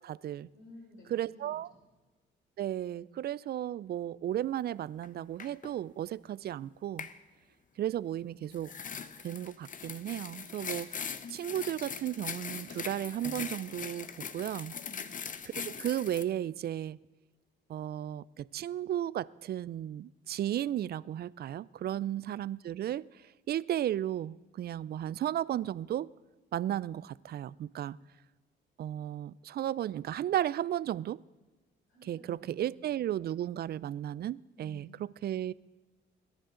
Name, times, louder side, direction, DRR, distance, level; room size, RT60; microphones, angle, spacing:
voice 1, 0.0-0.5 1.1-1.7 2.6-7.1 7.8-8.7 9.2-14.1 14.3-14.8 15.6-17.0 17.7-23.1 23.5-26.1 26.5-28.0 28.8-31.2 32.0-35.5, right 11 dB, 55° right, 21 dB, 0.4 m, -34 dB
voice 2, 0.5-1.3 14.8-15.2 21.8-22.1 31.9-32.9 34.6-35.0, left 1 dB, 80° left, -4 dB, 5.4 m, -54 dB
sound 1, 5.0-5.1 5.4-5.7 7.0-7.2 8.5-16.2, left 6 dB, 40° left, 0.8 m, -41 dB
21.5 x 10.5 x 3.8 m, 1.3 s
cardioid pair, 90°, 20 cm